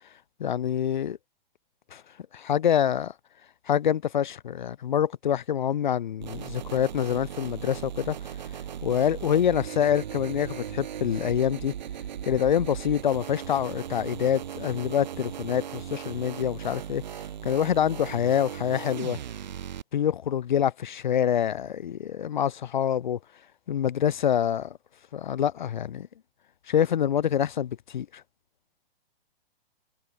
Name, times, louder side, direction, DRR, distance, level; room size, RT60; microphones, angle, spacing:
voice 1, 0.4-1.2 1.9-2.0 2.3-3.1 3.7-8.2 8.8-11.7 12.2-17.0 17.4-19.2 19.9-23.2 23.7-24.7 25.1-26.1 26.7-28.2, left 9 dB, 50° left, 0.5 m, -26 dB
sound 1, 6.2-19.8, right 9 dB, 50° right, 0.7 m, -37 dB
hypercardioid pair, 175°, 30 cm